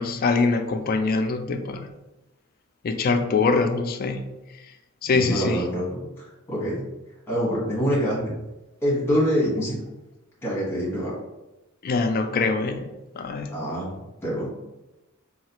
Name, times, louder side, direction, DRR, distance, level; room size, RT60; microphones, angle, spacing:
voice 1, 0.0-1.9 2.8-4.2 5.0-5.6 11.8-12.9 13.2-13.5, left 4 dB, 45° left, 7 dB, 0.3 m, -23 dB
voice 2, 5.1-6.8 7.3-8.3 8.8-9.8 10.4-11.2 13.5-14.5, equal, 10° left, -6 dB, 1.2 m, -26 dB
4.0 x 2.4 x 2.9 m, 1.0 s
head